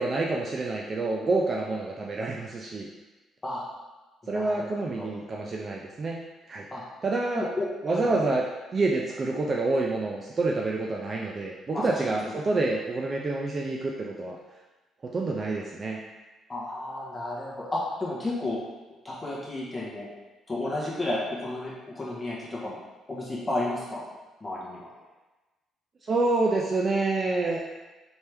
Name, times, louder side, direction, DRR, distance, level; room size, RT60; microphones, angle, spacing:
voice 1, 0.0-2.9 4.3-6.2 6.5-6.7 7.0-7.4 7.8-8.4 8.7-14.4 15.1-16.0 26.1-27.6, right 3 dB, 25° right, -2 dB, 0.3 m, -27 dB
voice 2, 4.2-4.7 5.0-5.1 6.7-6.8 7.3-8.1 11.7-12.0 16.5-18.6 19.0-20.1 20.5-22.8 23.1-24.0 24.4-24.8, left 2 dB, 15° left, -6 dB, 1.0 m, -32 dB
4.4 x 3.3 x 3.3 m, 1.2 s
cardioid pair, 180°, 0 cm